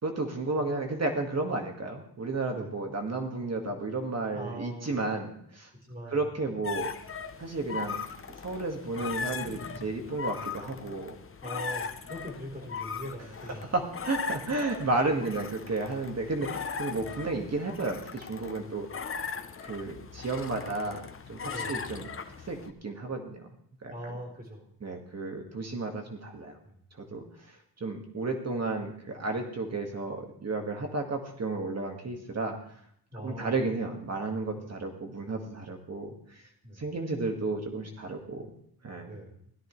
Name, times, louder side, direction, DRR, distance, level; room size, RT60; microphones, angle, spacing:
voice 1, 0.0-5.7 6.1-6.9 7.4-8.0 8.4-11.1 13.7-18.9 19.6-21.0 21.3-22.1 22.5-23.4 23.8-23.9 24.8-26.6 27.0-27.2 27.8-32.6 33.1-36.4 36.8-38.5 38.8-39.2, right 3 dB, 40° right, 3 dB, 1.9 m, -32 dB
voice 2, 4.3-5.0 5.9-6.2 11.4-13.7 16.9-17.1 18.7-18.8 21.5-21.8 23.9-24.7 26.6-26.8 33.1-33.6 34.5-34.7 36.6-36.9 39.0-39.4, equal, 20° right, 0 dB, 4.2 m, -41 dB
sound 1, 6.6-22.7, left 6 dB, 30° left, 0.8 m, -38 dB
17.0 x 13.0 x 3.2 m, 0.67 s
wide cardioid pair, 120°, 40 cm